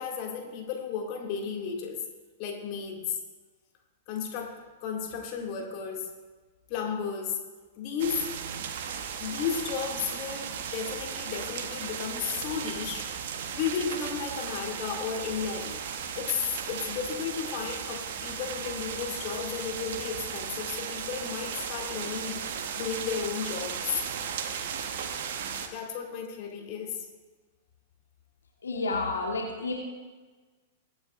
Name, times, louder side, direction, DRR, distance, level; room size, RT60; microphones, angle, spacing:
voice 1, 0.0-2.0 2.4-3.2 4.1-6.1 6.7-7.4 7.8-8.2 9.2-13.1 13.5-15.8 16.2-22.4 22.7-24.0 25.7-27.0, left 7 dB, 45° left, 0 dB, 2.3 m, -33 dB
sound 1, 8.0-25.7, right 7 dB, 55° right, 1.1 m, -36 dB
voice 2, 28.6-29.7, left 3 dB, 75° left, 0 dB, 1.5 m, -30 dB
22.0 x 9.5 x 2.5 m, 1.3 s
figure-of-eight pair, 100°, 0 cm